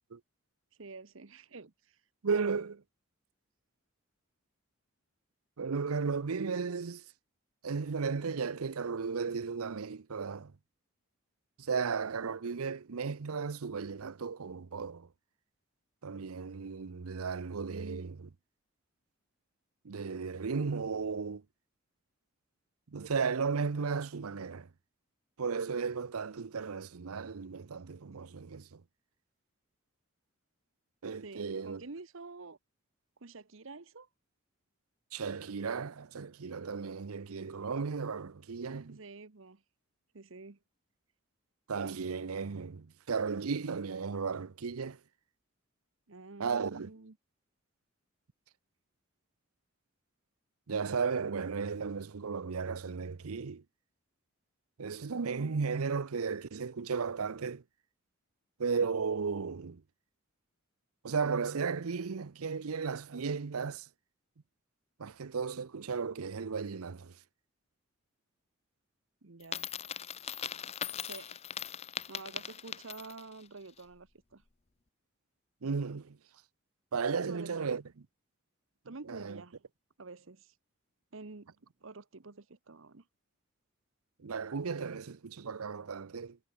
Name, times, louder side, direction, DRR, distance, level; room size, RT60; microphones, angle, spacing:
voice 1, 0.8-2.0 17.7-18.1 31.2-32.6 33.2-34.1 38.9-39.6 40.1-40.6 46.1-47.2 69.2-69.8 71.0-71.4 72.1-74.4 77.3-77.8 78.8-79.6 80.0-80.5 81.1-83.1, right 3 dB, 70° right, 1.0 m, -48 dB
voice 2, 2.2-2.8 5.6-7.0 7.6-10.5 11.6-15.1 16.0-18.2 19.8-21.4 22.9-24.7 25.4-28.8 31.0-31.8 35.1-39.0 41.7-45.0 46.4-46.9 50.7-53.6 54.8-57.6 58.6-59.8 61.0-63.9 65.0-67.2 75.6-76.2 76.9-77.8 79.1-79.4 84.2-86.4, right 5 dB, 90° right, 0.7 m, -35 dB
Coin (dropping), 69.4-73.3, left 8 dB, 30° left, 0.6 m, -40 dB
head